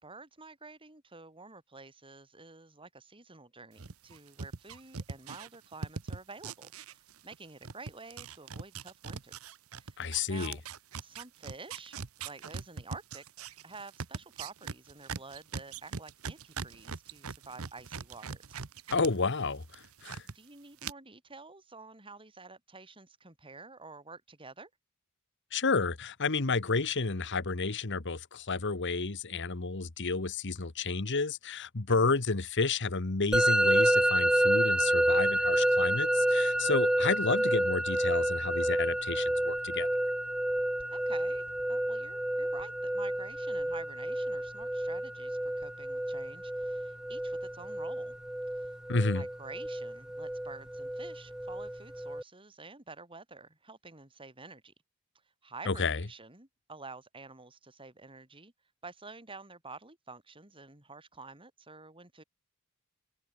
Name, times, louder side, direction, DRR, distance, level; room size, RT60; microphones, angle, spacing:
voice 1, 0.0-10.0 10.3-10.6 11.0-13.2 13.6-18.9 20.2-24.7 31.9-32.2 40.9-48.2 48.6-48.8 49.1-54.7 55.4-58.5 58.8-62.2, right 3 dB, 25° right, 3.9 m, -49 dB
sound 1, 3.8-7.4 7.6-19.1 19.4-20.3 20.8-20.9, right 5 dB, 75° right, 1.0 m, -41 dB
voice 2, 10.0-10.6 18.9-20.3 25.5-39.9 48.9-49.2 55.7-56.0, left 4 dB, 55° left, 1.4 m, -31 dB
Musical instrument, 33.3-52.2, right 1 dB, 5° right, 0.3 m, -29 dB
head